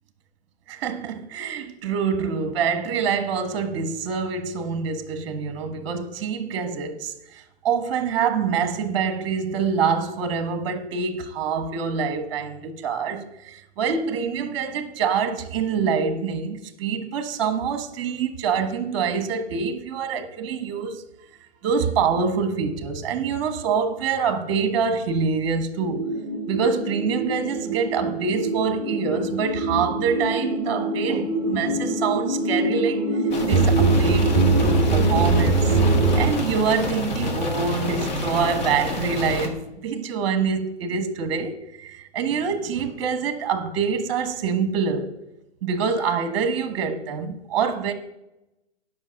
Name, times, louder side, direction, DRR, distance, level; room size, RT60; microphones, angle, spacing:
voice 1, 0.7-21.0 21.6-26.1 26.5-33.0 33.4-35.7 36.1-45.1 45.6-47.9, right 6 dB, 25° right, 1.2 m, -25 dB
sound 1, 25.8-36.3, right 2 dB, ahead, 1.2 m, -23 dB
sound 2, 33.3-39.5, left 2 dB, 40° left, 1.9 m, -28 dB
10.5 x 6.0 x 6.4 m
hypercardioid pair, 165°, 34 cm